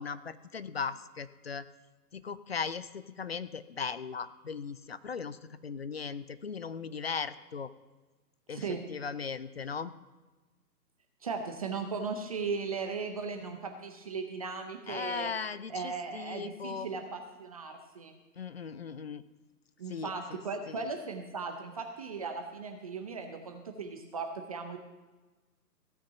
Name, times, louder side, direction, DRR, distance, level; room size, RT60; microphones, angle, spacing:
voice 1, 0.0-1.7 2.1-7.7 8.5-8.6 8.9-9.9 14.9-16.9 18.4-19.2 19.9-20.4 20.7-20.9, left 5 dB, 40° left, 15 dB, 0.5 m, -38 dB
voice 2, 8.5-8.8 11.2-15.3 15.7-18.1 19.8-24.8, right 4 dB, 20° right, 5 dB, 0.7 m, -37 dB
16.0 x 6.0 x 6.8 m, 1.2 s
hypercardioid pair, 145°, 49 cm